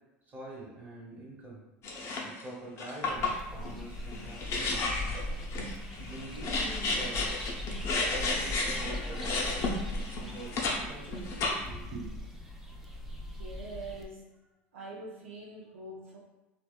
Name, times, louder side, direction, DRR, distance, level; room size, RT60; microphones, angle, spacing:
voice 1, 0.3-1.6 2.2-5.2 5.6-7.3 8.1-9.8 10.2-12.1, right 2 dB, 25° right, -4 dB, 1.1 m, -45 dB
sound 1, 1.8-2.4 2.8-10.8 11.1-11.9, left 3 dB, 45° left, 0.6 m, -33 dB
sound 2, 3.1-14.1, left 1 dB, 5° right, 0.4 m, -40 dB
voice 2, 13.3-14.3 14.7-16.2, right 2 dB, 85° right, -5 dB, 0.5 m, -44 dB
2.7 x 2.2 x 2.2 m, 1.0 s
hypercardioid pair, 80°, 7 cm